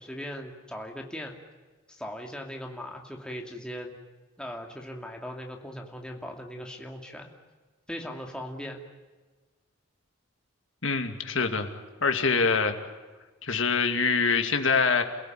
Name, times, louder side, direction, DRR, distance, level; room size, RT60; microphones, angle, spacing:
voice 1, 0.0-1.4 1.9-4.0 4.4-7.3 7.9-8.8, equal, 5° left, 1 dB, 2.6 m, -39 dB
voice 2, 10.8-11.7 12.0-12.7 13.4-15.0, left 5 dB, 70° left, 6 dB, 2.6 m, -24 dB
29.5 x 17.0 x 9.4 m, 1.3 s
head